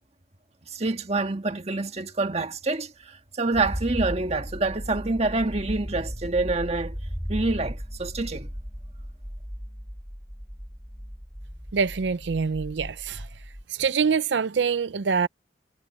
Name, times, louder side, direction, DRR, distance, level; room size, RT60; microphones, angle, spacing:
voice 1, 0.7-6.9 7.3-8.5, right 3 dB, 35° right, 1.7 m, -27 dB
sound 1, 3.5-13.6, equal, 5° right, 1.5 m, -36 dB
voice 2, 11.7-13.3 13.7-15.3, right 5 dB, 85° right, 0.5 m, -25 dB
head